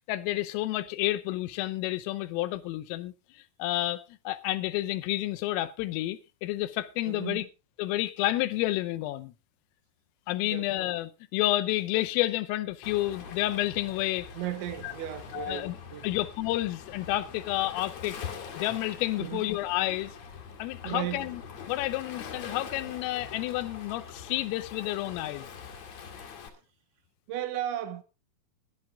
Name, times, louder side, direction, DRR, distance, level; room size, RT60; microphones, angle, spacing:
voice 1, 0.1-7.5 7.8-9.3 10.3-14.3 14.8-14.9 15.3-15.8 16.0-18.2 18.6-20.1 20.6-21.4 21.7-25.5, left 16 dB, 85° left, 3.4 m, -30 dB
voice 2, 7.0-7.5 10.4-10.7 14.3-16.2 19.2-19.5 20.8-21.3 27.3-28.0, right 12 dB, 75° right, 3.2 m, -35 dB
Waves surf, 12.8-26.5, left 6 dB, 60° left, 1.9 m, -43 dB
21.5 x 11.0 x 2.4 m
omnidirectional pair, 5.8 m